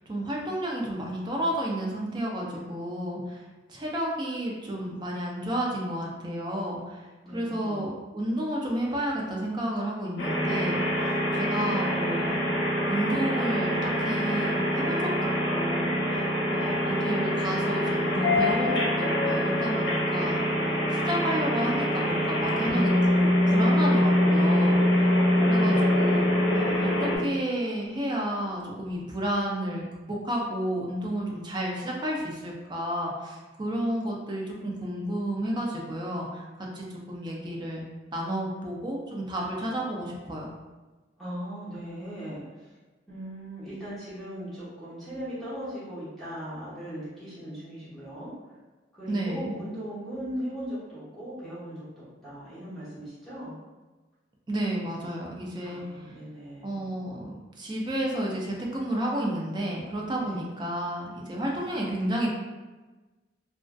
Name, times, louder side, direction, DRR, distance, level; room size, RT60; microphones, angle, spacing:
voice 1, 0.1-3.4 3.7-7.1 7.3-10.8 11.3-12.5 12.9-20.4 20.9-25.0 25.4-37.8 38.1-40.5 49.1-49.5 54.5-55.8 56.6-62.3, right 1 dB, 25° right, -1 dB, 0.4 m, -31 dB
voice 2, 7.2-7.8 25.4-26.1 41.2-42.7 43.1-48.3 48.9-53.6 55.6-57.0 60.2-60.4, equal, ahead, -13 dB, 1.0 m, -39 dB
sound 1, 10.2-27.2, left 1 dB, 85° left, 0.6 m, -24 dB
2.5 x 2.3 x 2.3 m, 1.2 s
head